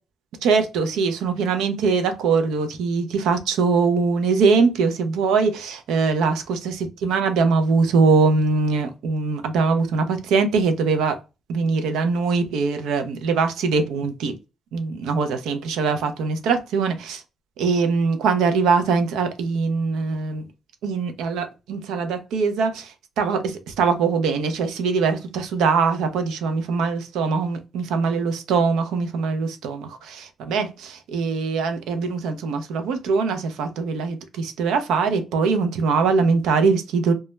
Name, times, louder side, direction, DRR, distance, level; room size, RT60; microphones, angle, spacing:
voice 1, 0.4-11.2 11.5-14.3 14.7-17.2 17.6-20.5 20.8-22.9 23.2-37.1, right 4 dB, 85° right, 0.4 m, -22 dB
2.2 x 2.0 x 3.0 m
supercardioid pair, 65°, 0 cm